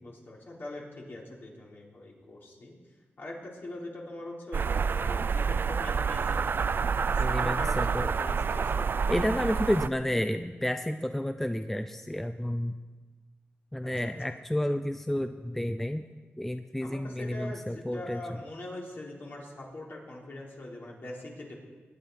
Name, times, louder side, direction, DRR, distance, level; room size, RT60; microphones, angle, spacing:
voice 1, 0.0-2.7 3.2-6.5 7.0-9.2 16.8-21.6, left 1 dB, 55° left, -3 dB, 3.6 m, -42 dB
sound 1, 4.5-9.9, right 5 dB, 55° right, 0.3 m, -28 dB
voice 2, 7.2-8.1 9.1-12.7 13.7-16.0 16.4-18.4, left 1 dB, 5° left, 8 dB, 0.5 m, -31 dB
21.5 x 9.3 x 4.7 m, 1.4 s
wide cardioid pair, 90°, 4 cm